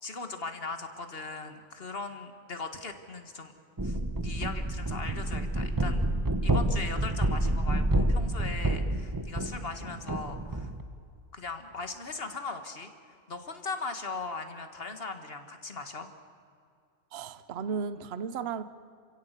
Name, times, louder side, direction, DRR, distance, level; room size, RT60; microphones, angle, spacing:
voice 1, 0.0-3.5 3.8-6.1 6.4-10.7 11.3-16.1, left 4 dB, 45° left, 8 dB, 1.9 m, -39 dB
sound 1, 3.8-10.8, right 1 dB, 15° right, 1.0 m, -29 dB
voice 2, 17.1-18.6, right 6 dB, 50° right, 13 dB, 1.0 m, -34 dB
27.5 x 16.0 x 8.3 m, 2.3 s
omnidirectional pair, 1.5 m